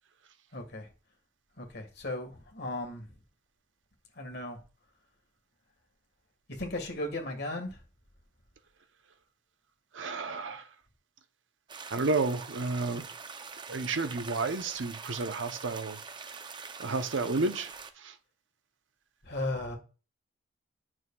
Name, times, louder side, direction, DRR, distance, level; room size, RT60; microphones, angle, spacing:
voice 1, 0.5-0.9 1.6-3.1 4.2-4.6 6.5-7.8 19.2-19.8, left 2 dB, 60° left, 1.7 m, -36 dB
voice 2, 9.9-10.6 11.9-13.1 13.7-16.0 16.8-17.7 18.0-18.1, right 3 dB, 75° right, 0.7 m, -31 dB
sound 1, 11.7-17.9, right 5 dB, 25° right, 0.5 m, -44 dB
9.3 x 6.2 x 2.3 m
head